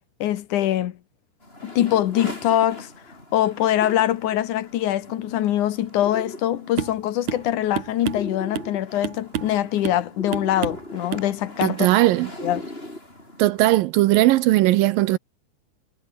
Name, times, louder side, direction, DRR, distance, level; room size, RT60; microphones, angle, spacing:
voice 1, 0.2-1.0 1.6-2.9 3.3-11.9 12.4-12.7, left 12 dB, 65° left, 2.2 m, -23 dB
sound 1, 1.4-13.6, left 1 dB, 15° left, 7.2 m, -40 dB
sound 2, 6.8-7.0 7.3-7.5 7.8-8.7 9.0-9.6 9.8-10.1 10.3-10.9 11.1-11.3 11.6-11.8, right 11 dB, 60° right, 2.4 m, -29 dB
voice 2, 11.6-12.3 13.4-15.2, right 16 dB, 80° right, 2.1 m, -18 dB
omnidirectional pair, 4.7 m